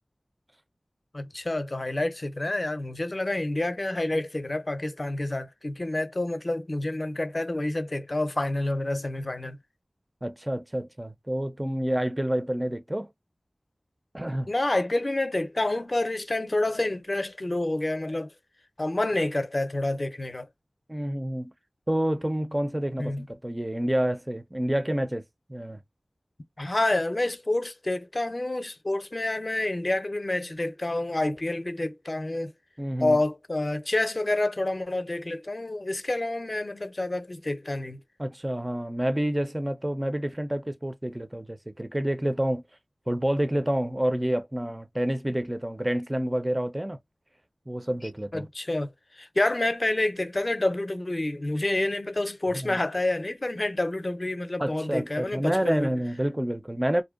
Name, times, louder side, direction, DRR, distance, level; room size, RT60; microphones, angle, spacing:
voice 1, 1.1-9.6 14.5-18.3 18.8-20.5 23.0-23.3 26.6-32.5 33.0-38.0 48.3-48.9 49.2-55.9, left 2 dB, 45° left, 0.5 m, -28 dB
voice 2, 10.2-13.1 14.1-14.5 20.9-21.5 21.9-25.2 25.5-25.8 32.8-33.2 38.2-42.6 43.1-47.0 47.7-48.5 52.5-52.8 54.6-57.0, right 1 dB, 20° right, 0.4 m, -28 dB
2.5 x 2.1 x 2.3 m
wide cardioid pair, 45°, 0 cm